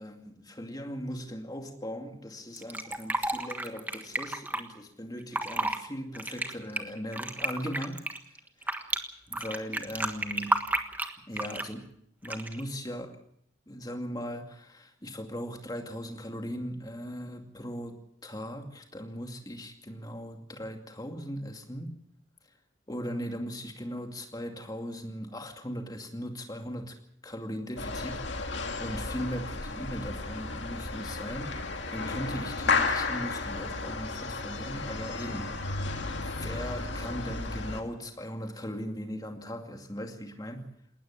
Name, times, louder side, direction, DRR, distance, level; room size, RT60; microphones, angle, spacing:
voice 1, 0.0-8.9 9.3-10.6 11.3-11.9 12.2-13.2 13.7-22.0 22.9-27.0 27.2-35.6 36.0-40.7, equal, 20° left, 4 dB, 2.4 m, -39 dB
Fill (with liquid), 2.6-4.6 5.2-5.8 6.1-9.0 9.3-11.7 12.2-12.6, right 2 dB, 10° right, 1.4 m, -31 dB
sound 1, 27.8-37.8, left 3 dB, 60° left, 2.3 m, -33 dB
20.0 x 19.0 x 7.5 m, 0.69 s
head